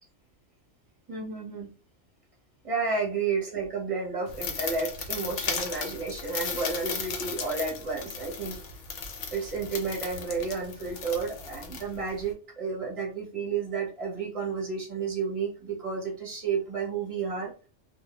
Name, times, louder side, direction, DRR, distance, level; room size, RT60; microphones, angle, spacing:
voice 1, 1.1-1.7 2.6-8.6 9.3-17.5, right 4 dB, 30° right, -2 dB, 0.8 m, -31 dB
sound 1, 4.3-12.3, left 5 dB, 75° left, 0.9 m, -36 dB
2.2 x 2.0 x 2.8 m, 0.35 s
omnidirectional pair, 1.2 m